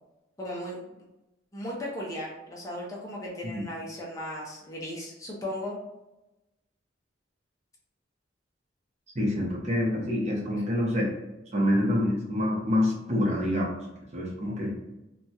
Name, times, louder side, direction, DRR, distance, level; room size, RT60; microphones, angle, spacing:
voice 1, 0.4-1.0 1.5-5.8, left 1 dB, 20° left, -5 dB, 0.5 m, -36 dB
voice 2, 9.1-11.1 11.5-13.7 14.1-14.7, left 1 dB, 35° right, -2 dB, 0.7 m, -26 dB
2.9 x 2.3 x 2.7 m, 0.96 s
head